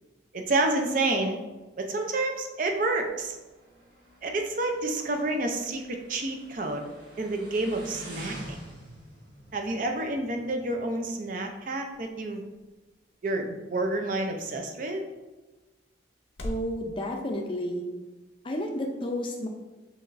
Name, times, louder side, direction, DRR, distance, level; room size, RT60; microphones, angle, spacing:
voice 1, 0.3-1.4 1.8-3.4 4.2-6.9 7.2-8.6 9.5-12.5 13.2-15.1, right 2 dB, 45° right, 3 dB, 0.5 m, -29 dB
Motorcycle, 2.7-10.9, right 1 dB, 65° right, 1.3 m, -48 dB
sound 1, 10.5-16.7, equal, 80° left, 0.8 m, -46 dB
voice 2, 16.4-17.8 18.4-19.5, left 1 dB, 25° left, 2 dB, 0.4 m, -31 dB
6.9 x 3.0 x 2.5 m, 1.2 s
head